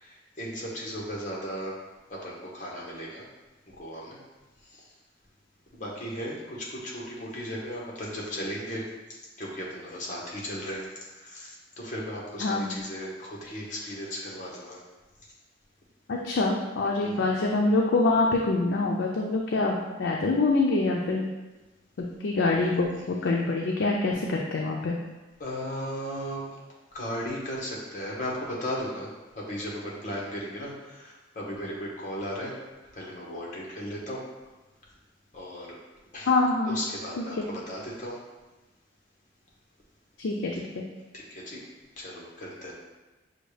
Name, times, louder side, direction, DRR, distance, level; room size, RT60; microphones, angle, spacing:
voice 1, 0.0-1.8 2.1-3.3 3.7-4.2 5.7-8.9 9.4-14.8 17.0-17.2 25.4-26.6 26.9-29.1 29.4-32.5 32.9-34.2 35.3-35.8 36.1-36.3 36.6-38.2 41.1-41.6 42.0-42.7, equal, 45° left, -3 dB, 1.1 m, -36 dB
voice 2, 12.4-12.8 16.1-21.3 22.2-25.0 36.3-36.8 37.2-37.4 40.2-40.8, left 3 dB, 80° left, -1 dB, 0.5 m, -25 dB
6.3 x 2.3 x 3.2 m, 1.1 s
head